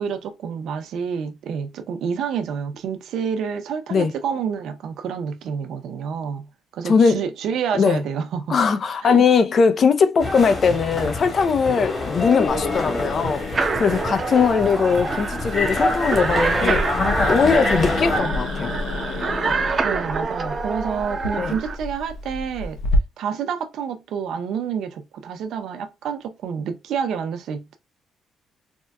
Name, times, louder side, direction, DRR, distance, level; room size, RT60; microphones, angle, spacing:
voice 1, 0.0-8.6 9.0-9.2 19.8-22.8 23.2-27.8, right 7 dB, 75° right, 0.6 m, -28 dB
voice 2, 6.8-7.3 7.7-8.0 8.5-13.4 13.8-16.8 17.3-18.7 21.4-21.6, left 5 dB, 50° left, 0.5 m, -20 dB
sound 1, 10.2-18.2, left 2 dB, 30° left, 1.7 m, -26 dB
Growling, 12.5-23.0, left 3 dB, 75° left, 0.8 m, -31 dB
sound 2, 13.5-21.8, right 4 dB, 40° right, 0.6 m, -27 dB
4.3 x 2.2 x 2.2 m
cardioid pair, 90°, 0 cm